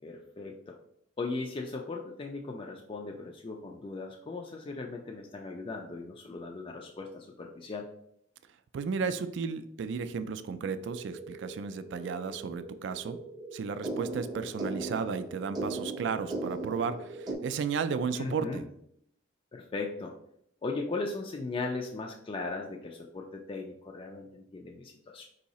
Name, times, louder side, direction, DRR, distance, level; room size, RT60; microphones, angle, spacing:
voice 1, 0.0-0.8 1.2-7.9 18.1-18.6 19.5-20.2 20.6-25.2, left 3 dB, 25° left, 1 dB, 0.3 m, -38 dB
voice 2, 8.7-13.2 13.5-18.6, right 5 dB, 65° right, 11 dB, 0.3 m, -34 dB
sound 1, 10.9-17.3, right 2 dB, 20° right, 0.6 m, -39 dB
4.7 x 2.7 x 4.0 m, 0.73 s
head